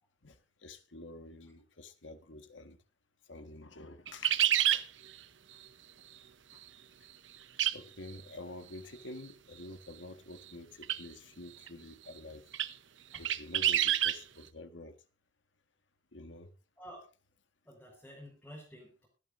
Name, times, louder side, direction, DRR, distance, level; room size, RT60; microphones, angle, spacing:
voice 1, 0.6-2.8 3.3-4.9 6.5-6.6 7.7-12.4 13.2-14.9 16.1-16.5, left 2 dB, 90° left, 1.6 m, -48 dB
sound 1, 4.1-4.8 7.6-7.8 8.1-8.2 10.8-11.0 11.7-11.8 12.5-12.7 13.1-14.2, right 11 dB, 85° right, 0.9 m, -27 dB
voice 2, 17.6-19.1, equal, 10° left, 5.1 m, -50 dB
25.0 x 9.7 x 2.6 m
head